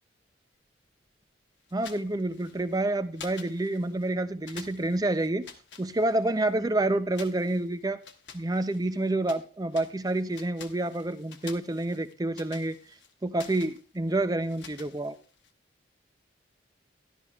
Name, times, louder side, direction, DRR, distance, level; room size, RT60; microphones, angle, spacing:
sound 1, 1.7-2.8 3.1-4.1 4.4-6.5 7.1-9.5 9.7-15.5, left 6 dB, 70° left, 1.0 m, -49 dB
voice 1, 1.7-5.5 5.8-8.0 8.3-12.8 13.2-15.2, right 2 dB, 20° right, 0.5 m, -28 dB
12.5 x 12.0 x 2.3 m
head